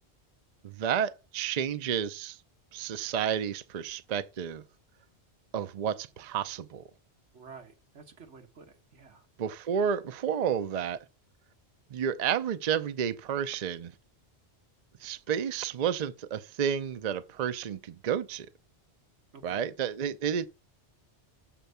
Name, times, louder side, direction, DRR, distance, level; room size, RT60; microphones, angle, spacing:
voice 1, 0.6-2.4 2.7-4.6 5.5-6.8 9.4-11.0 11.9-13.9 15.0-18.5 19.4-20.4, right 8 dB, 50° right, 0.6 m, -31 dB
voice 2, 7.3-9.2 19.3-19.7, right 5 dB, 85° right, 1.7 m, -51 dB
7.4 x 4.5 x 6.7 m
omnidirectional pair, 1.1 m